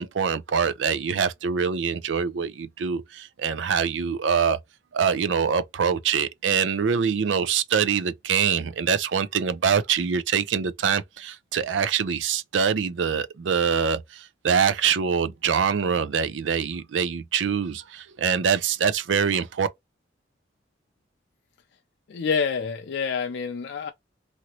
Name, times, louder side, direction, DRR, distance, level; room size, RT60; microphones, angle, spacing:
voice 1, 0.0-4.6 4.9-19.7, right 6 dB, 90° right, 0.4 m, -24 dB
voice 2, 22.1-23.9, left 6 dB, 65° left, 0.4 m, -27 dB
2.9 x 2.6 x 2.8 m
head